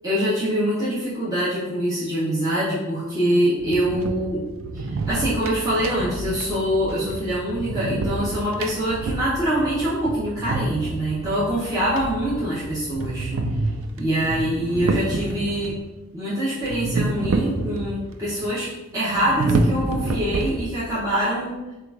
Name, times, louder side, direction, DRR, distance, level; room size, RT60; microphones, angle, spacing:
voice 1, 0.0-4.4 4.7-13.3 14.0-15.8 16.1-21.6, equal, 15° right, -10 dB, 0.8 m, -24 dB
sound 1, 3.6-15.8 16.6-18.1 18.4-18.5 19.0-21.0, right 2 dB, 80° right, 0.4 m, -28 dB
3.7 x 2.4 x 4.6 m, 1.1 s
head